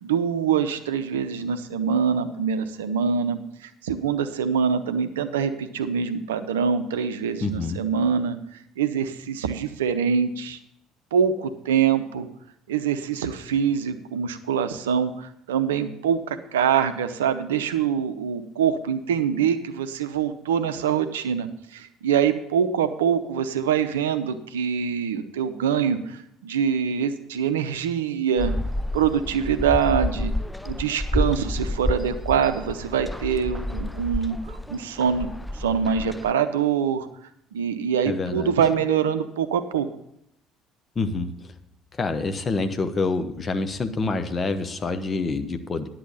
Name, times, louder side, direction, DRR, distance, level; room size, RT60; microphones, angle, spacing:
voice 1, 0.0-8.4 8.8-10.6 11.1-12.3 12.7-28.5 28.9-30.3 30.6-35.3 35.5-37.1 37.5-39.9, right 7 dB, 75° right, 10 dB, 0.6 m, -24 dB
voice 2, 7.4-7.8 38.0-38.6 40.9-41.6 41.9-45.9, left 3 dB, 30° left, 9 dB, 1.0 m, -27 dB
sound 1, 28.4-36.3, left 1 dB, 5° left, 0.5 m, -29 dB
10.5 x 7.6 x 5.5 m, 0.76 s
figure-of-eight pair, 55°, 0 cm